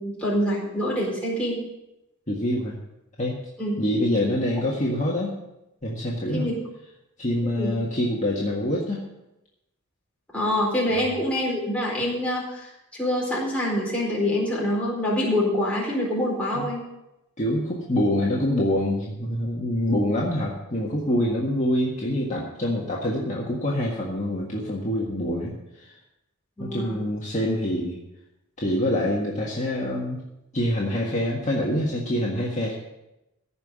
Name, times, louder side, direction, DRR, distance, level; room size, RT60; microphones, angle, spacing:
voice 1, 0.0-1.6 3.6-3.8 6.3-6.5 7.4-7.7 10.3-16.8 26.6-27.0, left 1 dB, 5° left, -4 dB, 4.3 m, -26 dB
voice 2, 2.3-2.8 3.2-3.4 3.8-5.3 5.8-6.5 7.2-9.0 10.9-11.0 16.5-16.7 17.4-25.9 26.6-28.0 28.6-30.2 30.5-32.7, left 1 dB, 35° left, -4 dB, 1.7 m, -25 dB
15.5 x 5.7 x 8.2 m, 0.92 s
head